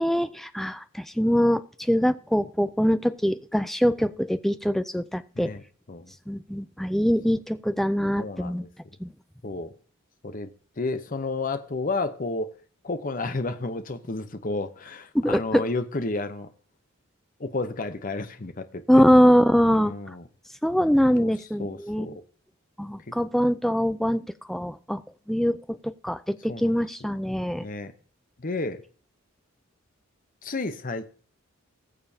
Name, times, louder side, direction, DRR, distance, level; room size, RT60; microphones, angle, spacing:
voice 1, 0.0-5.5 6.3-8.7 9.0-9.1 15.1-15.6 18.9-19.9 20.6-22.1 22.8-25.0 25.3-27.7, equal, ahead, 0.4 m, -23 dB
voice 2, 8.2-8.7 9.4-9.7 10.2-10.5 10.8-12.5 12.8-16.5 17.4-19.0 19.7-20.2 21.1-21.3 21.6-22.2 23.1-23.2 26.5-26.7 27.6-27.9 28.4-28.8 30.4-31.1, left 3 dB, 40° left, 0.8 m, -31 dB
20.0 x 6.9 x 2.8 m
head